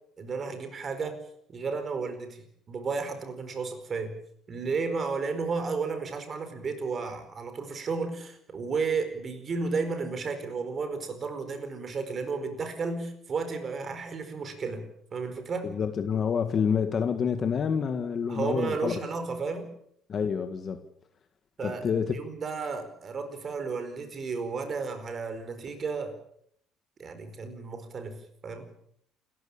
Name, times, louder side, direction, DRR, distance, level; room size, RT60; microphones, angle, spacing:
voice 1, 0.2-1.2 1.5-4.2 4.5-15.7 18.3-19.7 21.6-26.2 27.0-28.7, right 4 dB, 30° right, 4.7 m, -33 dB
voice 2, 15.6-18.9 20.1-20.8 21.6-22.1, left 6 dB, 35° left, 1.8 m, -28 dB
28.5 x 14.5 x 8.7 m
cardioid pair, 160°, 0 cm